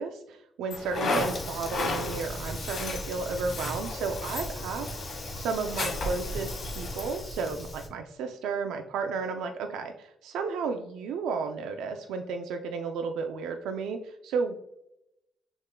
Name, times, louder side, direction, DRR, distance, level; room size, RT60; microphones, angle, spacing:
voice 1, 0.0-14.5, right 4 dB, 85° right, 5 dB, 0.4 m, -33 dB
sound 1, 0.7-7.2, left 3 dB, 55° left, 1.7 m, -35 dB
Fire, 1.1-7.9, left 1 dB, 30° left, 0.9 m, -38 dB
sound 2, 3.7-7.6, left 5 dB, 80° left, 0.6 m, -47 dB
6.4 x 3.6 x 2.2 m, 0.80 s
cardioid pair, 90°, 0 cm